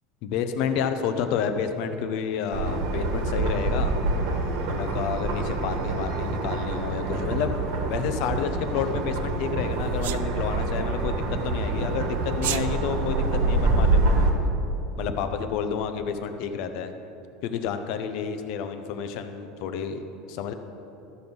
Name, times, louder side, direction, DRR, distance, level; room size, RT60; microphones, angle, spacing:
voice 1, 0.2-3.9 4.6-7.5 7.9-14.3 15.0-16.9 17.4-20.5, left 7 dB, 55° left, 8 dB, 0.7 m, -30 dB
sound 1, 2.5-14.3, right 2 dB, 60° right, 1.5 m, -26 dB
Sneeze, 10.0-10.2 12.3-12.7, right 14 dB, 85° right, 0.4 m, -29 dB
13.0 x 6.1 x 5.3 m, 2.8 s
supercardioid pair, 160°, 0 cm